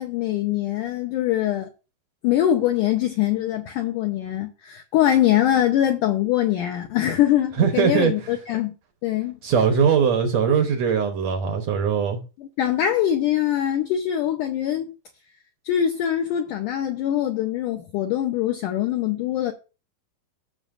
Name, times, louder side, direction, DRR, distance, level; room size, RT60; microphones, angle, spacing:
voice 1, 0.0-1.7 2.2-8.7 9.0-9.4 12.4-14.9 15.6-19.5, left 11 dB, 80° left, 1.8 m, -23 dB
voice 2, 7.6-8.1 9.4-12.2, right 7 dB, 85° right, 1.5 m, -20 dB
14.5 x 6.6 x 2.6 m
omnidirectional pair, 4.7 m